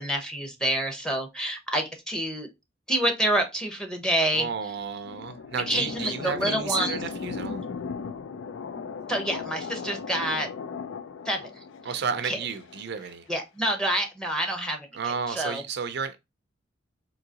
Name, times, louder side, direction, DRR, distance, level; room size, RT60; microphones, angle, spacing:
voice 1, 0.0-2.5 2.9-4.5 5.7-7.0 9.1-10.5 11.3-11.5 12.3-12.4 13.3-15.6, right 1 dB, 5° left, 0.8 m, -27 dB
voice 2, 4.3-7.7 11.8-13.3 14.9-16.2, right 6 dB, 60° right, 0.5 m, -32 dB
sound 1, 4.6-13.1, left 5 dB, 70° left, 0.4 m, -37 dB
3.8 x 2.8 x 2.7 m
head